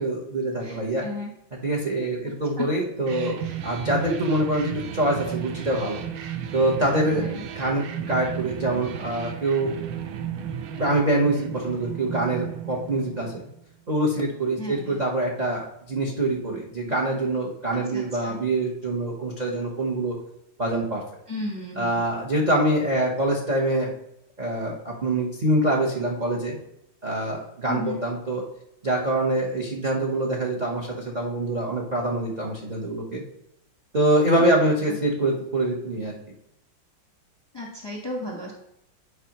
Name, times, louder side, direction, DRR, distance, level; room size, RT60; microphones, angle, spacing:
voice 1, 0.0-1.1 1.6-6.0 6.5-9.7 10.7-13.4 13.9-20.2 20.6-21.0 21.8-23.9 24.4-26.6 27.0-28.4 28.8-33.2 33.9-36.2, right 1 dB, 55° right, -1 dB, 0.4 m, -25 dB
voice 2, 0.6-1.3 2.6-2.7 7.2-7.5 14.6-15.0 17.9-18.4 21.3-22.0 27.7-28.0 37.5-38.5, left 3 dB, 20° left, -1 dB, 0.6 m, -34 dB
sound 1, 3.1-13.6, right 9 dB, 80° right, 1.5 m, -34 dB
9.9 x 4.8 x 2.9 m, 0.79 s
omnidirectional pair, 2.3 m